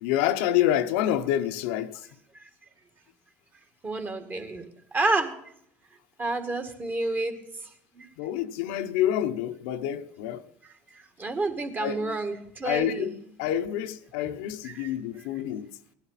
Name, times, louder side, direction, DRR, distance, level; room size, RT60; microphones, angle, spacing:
voice 1, 0.0-2.0 8.2-10.4 11.8-12.2 12.6-15.7, left 11 dB, 85° left, 0.7 m, -27 dB
voice 2, 3.8-4.7 4.9-5.3 6.2-7.3 8.0-8.1 11.2-13.1 14.3-14.4 14.6-14.9, right 2 dB, 30° right, 2.0 m, -29 dB
17.5 x 11.5 x 4.1 m
supercardioid pair, 90°, 6 cm